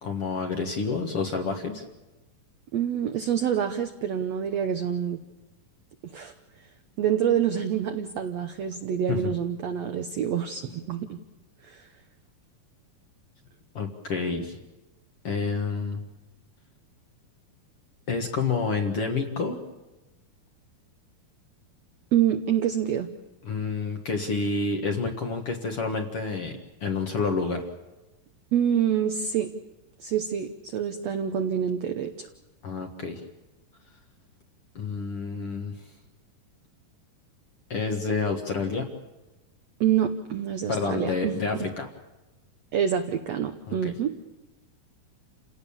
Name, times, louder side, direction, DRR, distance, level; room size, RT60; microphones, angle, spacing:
voice 1, 0.0-1.8 9.1-9.3 13.7-14.6 15.2-16.0 18.1-19.6 23.4-27.6 32.6-33.2 34.8-35.8 37.7-38.9 40.7-41.9 43.7-43.9, left 4 dB, 50° left, 3 dB, 2.0 m, -29 dB
voice 2, 2.7-5.2 6.0-6.3 7.0-11.2 11.6-11.9 22.1-23.1 28.5-29.5 30.0-32.3 39.8-41.4 42.7-44.1, right 9 dB, 75° right, 6 dB, 1.5 m, -26 dB
29.5 x 17.5 x 7.2 m, 1.1 s
omnidirectional pair, 4.3 m